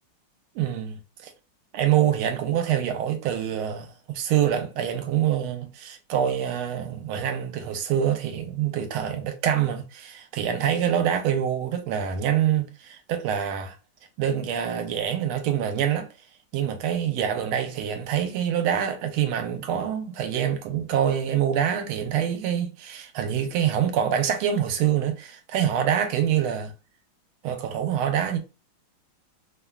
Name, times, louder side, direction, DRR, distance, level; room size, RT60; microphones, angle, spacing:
voice 1, 0.5-1.3 1.7-13.8 14.2-16.1 16.5-26.7 27.4-28.4, right 9 dB, 85° right, 1.5 m, -25 dB
3.4 x 2.2 x 2.2 m
omnidirectional pair, 2.3 m